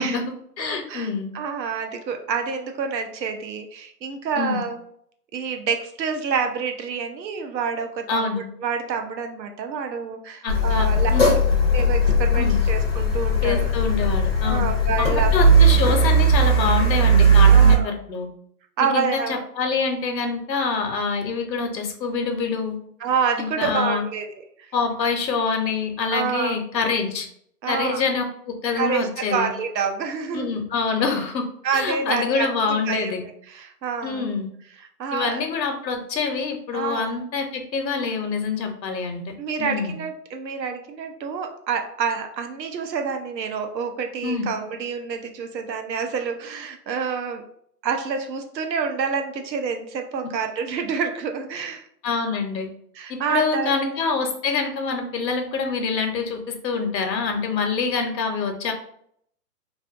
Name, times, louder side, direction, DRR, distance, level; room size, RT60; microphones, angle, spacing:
voice 1, 0.0-1.3 4.4-4.6 8.1-8.4 10.4-11.3 12.4-12.6 13.4-14.7 15.3-18.3 18.8-22.8 23.4-24.0 24.7-27.3 27.7-29.5 30.3-31.5 31.7-33.2 34.0-34.5 35.1-39.2 39.6-40.0 44.2-44.5 52.0-52.7 53.1-58.7, left 5 dB, 90° left, 5 dB, 0.8 m, -26 dB
voice 2, 0.6-4.8 5.3-8.2 8.6-11.1 11.7-13.7 14.4-15.3 17.4-17.9 18.8-19.4 23.0-24.2 26.1-26.5 27.6-28.0 28.8-30.5 31.6-33.1 33.5-34.3 35.0-35.4 36.7-37.1 39.4-47.4 47.8-51.9 53.0-53.9, right 6 dB, 90° right, 5 dB, 0.7 m, -27 dB
Car, 10.5-17.8, right 2 dB, 40° left, 0.4 m, -17 dB
2.5 x 2.5 x 2.4 m, 0.67 s
hypercardioid pair, 175°, 49 cm